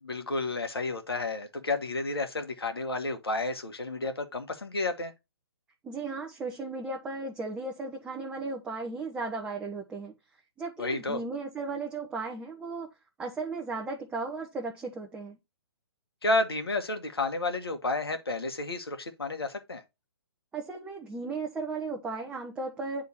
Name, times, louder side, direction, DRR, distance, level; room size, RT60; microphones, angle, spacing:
voice 1, 0.0-5.1 10.8-11.2 16.2-19.8, left 2 dB, 70° left, 1.6 m, -31 dB
voice 2, 5.8-10.1 10.6-12.9 13.2-15.4 20.5-23.1, right 3 dB, 10° right, 0.8 m, -35 dB
9.5 x 3.7 x 4.2 m
figure-of-eight pair, 130°, 13 cm